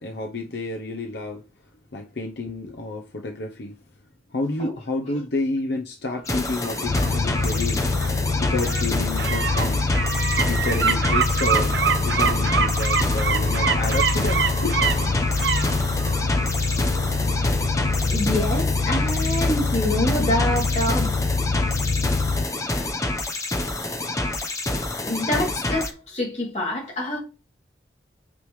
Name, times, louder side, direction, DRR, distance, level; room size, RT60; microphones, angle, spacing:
voice 1, 0.0-1.4 1.9-3.8 4.3-7.8 8.4-9.8 10.5-11.7 12.0-14.9, left 2 dB, 80° left, 0.9 m, -30 dB
sound 1, 6.2-25.9, left 2 dB, 20° left, 0.9 m, -28 dB
sound 2, 6.3-19.1 19.5-19.6, right 7 dB, 90° right, 0.7 m, -28 dB
sound 3, 6.8-22.4, left 3 dB, 55° left, 0.4 m, -25 dB
voice 2, 18.0-21.1 25.0-27.2, left 1 dB, 40° left, 3.0 m, -26 dB
8.7 x 5.2 x 3.2 m
head